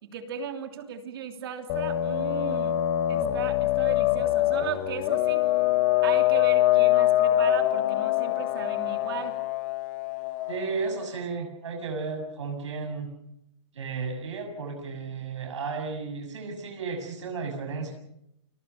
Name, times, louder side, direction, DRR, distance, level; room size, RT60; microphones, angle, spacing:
voice 1, 0.0-2.8 3.1-5.5 6.0-9.4, right 7 dB, 50° right, 6 dB, 3.1 m, -36 dB
sound 1, 1.7-10.9, left 13 dB, 30° left, 1.2 m, -24 dB
voice 2, 10.5-13.1 13.7-17.9, right 4 dB, 80° right, 4 dB, 6.7 m, -33 dB
29.0 x 22.0 x 5.8 m, 0.78 s
hypercardioid pair, 165°, 15 cm